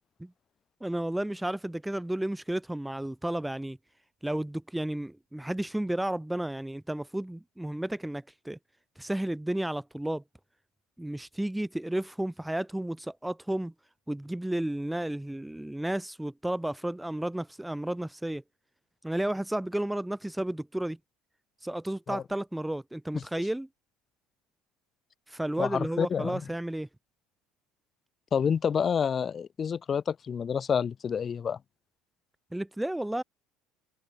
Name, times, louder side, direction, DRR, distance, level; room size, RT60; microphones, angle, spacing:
voice 1, 0.8-3.8 4.2-8.6 9.0-10.2 11.0-13.7 14.1-18.4 19.0-21.0 21.6-23.7 25.3-26.9 32.5-33.2, right 1 dB, 5° right, 1.4 m, -32 dB
voice 2, 25.6-26.4 28.3-31.6, left 7 dB, 25° left, 1.6 m, -28 dB
cardioid pair, 170°, 0 cm